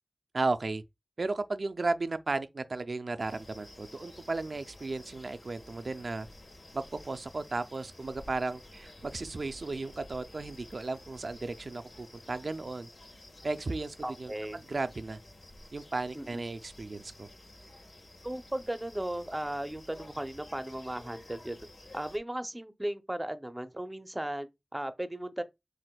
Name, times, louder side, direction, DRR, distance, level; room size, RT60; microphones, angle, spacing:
voice 1, 0.3-0.8 1.2-6.3 6.7-12.9 13.4-15.2 15.7-17.3, right 3 dB, 65° right, 0.4 m, -35 dB
sound 1, 3.2-22.2, left 1 dB, 75° left, 1.2 m, -52 dB
voice 2, 14.0-14.6 16.1-16.4 18.2-21.6 21.9-25.4, right 1 dB, 15° right, 0.6 m, -36 dB
7.5 x 2.5 x 2.2 m
wide cardioid pair, 65°, 0 cm